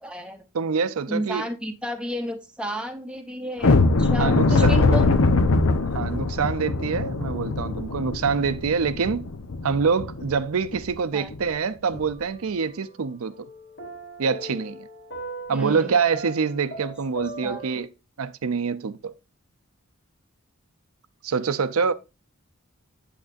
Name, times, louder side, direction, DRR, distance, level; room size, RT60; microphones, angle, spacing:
voice 1, 0.0-0.4 1.1-5.1 11.1-11.3 15.5-15.9 17.4-17.6, equal, 5° right, 0.8 m, -32 dB
voice 2, 0.5-1.4 4.2-5.0 5.9-9.3 9.6-13.3 14.2-14.8 15.5-17.9 18.2-19.1 21.2-21.9, right 5 dB, 80° right, 0.5 m, -25 dB
sound 1, 3.6-10.3 10.7-10.9 11.3-11.4 11.9-12.1, left 3 dB, 85° left, 0.9 m, -22 dB
sound 2, 11.9-13.0 13.3-17.8, right 2 dB, 55° left, 1.8 m, -39 dB
8.6 x 7.4 x 2.6 m
head